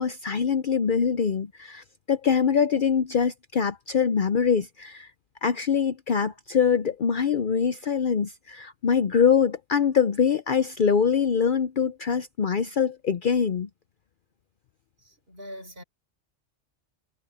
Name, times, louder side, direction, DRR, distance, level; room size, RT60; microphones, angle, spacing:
voice 1, 0.0-5.1 5.4-13.7, left 6 dB, 50° left, 0.7 m, -24 dB
voice 2, 15.0-15.8, equal, 50° right, 4.5 m, -42 dB
omnidirectional pair, 1.2 m